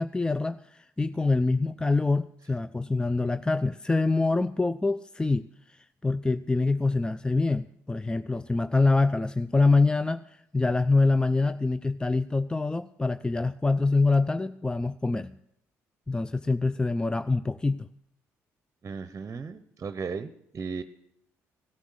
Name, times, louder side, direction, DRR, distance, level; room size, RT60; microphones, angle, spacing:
voice 1, 0.0-15.3 16.1-17.9, left 3 dB, 10° left, 14 dB, 0.4 m, -25 dB
voice 2, 18.8-20.8, right 5 dB, 40° right, 13 dB, 0.8 m, -36 dB
16.0 x 8.2 x 6.4 m, 0.75 s
hypercardioid pair, 60°, 7 cm